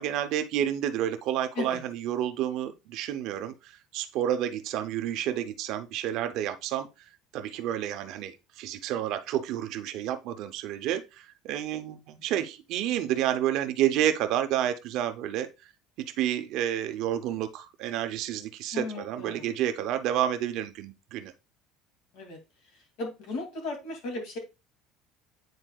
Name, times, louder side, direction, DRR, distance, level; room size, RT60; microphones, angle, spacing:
voice 1, 0.0-6.9 7.3-15.5 16.0-21.3, right 11 dB, 50° right, 0.7 m, -30 dB
voice 2, 18.7-19.5 22.1-22.4 23.0-24.4, left 3 dB, 60° left, 2.5 m, -35 dB
9.3 x 4.5 x 2.3 m
cardioid pair, 175°, 0 cm